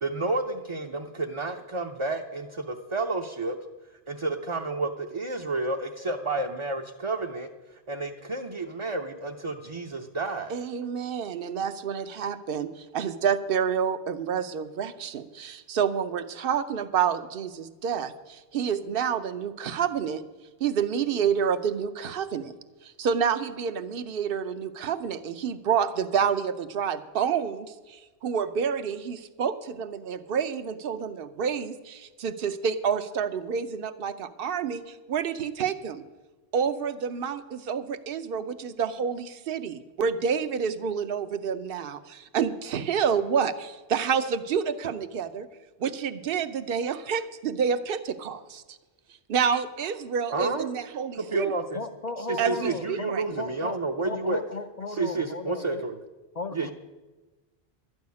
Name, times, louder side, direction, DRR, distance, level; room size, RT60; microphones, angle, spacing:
voice 1, 0.0-3.6 4.1-7.5 7.9-10.5 50.3-50.7 51.1-51.8 52.3-54.4 54.9-56.0 56.5-56.7, right 3 dB, 35° right, 1 dB, 0.6 m, -30 dB
voice 2, 10.5-20.2 20.6-22.5 22.8-36.0 36.5-45.5 45.8-48.8 49.3-51.5 52.4-53.2, right 7 dB, 60° right, 11 dB, 0.9 m, -28 dB
voice 3, 51.7-53.8 54.0-55.8 56.3-56.7, left 3 dB, 45° left, 8 dB, 0.6 m, -36 dB
12.5 x 6.4 x 9.6 m, 1.2 s
omnidirectional pair, 1.1 m